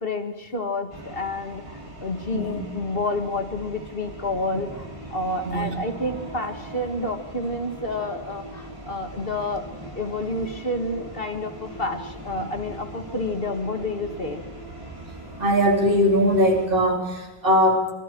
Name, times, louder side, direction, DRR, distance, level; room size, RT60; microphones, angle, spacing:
voice 1, 0.0-9.7 10.0-14.4, left 2 dB, 50° left, 6 dB, 2.2 m, -29 dB
sound 1, 0.9-16.7, right 1 dB, 25° right, 5.5 m, -40 dB
voice 2, 2.3-2.6 5.5-5.7 15.4-17.9, equal, 50° right, 2 dB, 3.6 m, -20 dB
26.5 x 26.0 x 4.7 m, 1.1 s
omnidirectional pair, 1.2 m